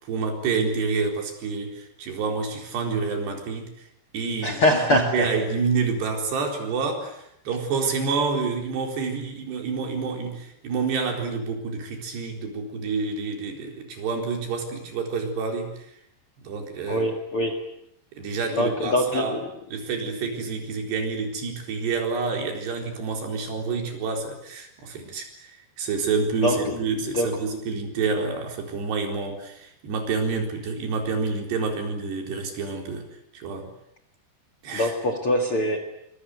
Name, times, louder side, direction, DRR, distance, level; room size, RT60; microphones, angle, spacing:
voice 1, 0.0-3.7 4.1-15.9 16.4-17.1 18.2-19.4 19.7-33.1 33.3-33.7 34.6-34.9, right 4 dB, 70° right, 3 dB, 6.2 m, -28 dB
voice 2, 4.4-5.3 16.9-17.7 18.5-19.4 26.4-26.8 27.1-27.4 34.7-35.8, left 1 dB, 40° left, 7 dB, 2.2 m, -23 dB
25.0 x 22.5 x 9.6 m, 0.76 s
omnidirectional pair, 5.0 m